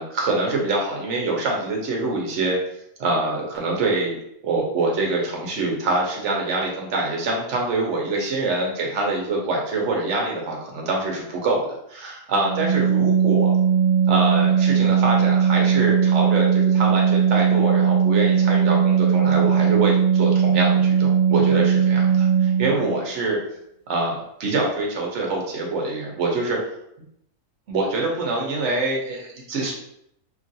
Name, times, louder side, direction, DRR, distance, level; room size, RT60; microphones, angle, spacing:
voice 1, 0.0-2.6 3.0-4.2 4.4-13.5 14.1-23.4 23.9-26.6 27.7-29.7, right 2 dB, 55° right, -1 dB, 0.9 m, -25 dB
Organ, 12.4-22.9, right 7 dB, 35° right, 0.5 m, -19 dB
2.9 x 2.4 x 2.6 m, 0.75 s
omnidirectional pair, 1.6 m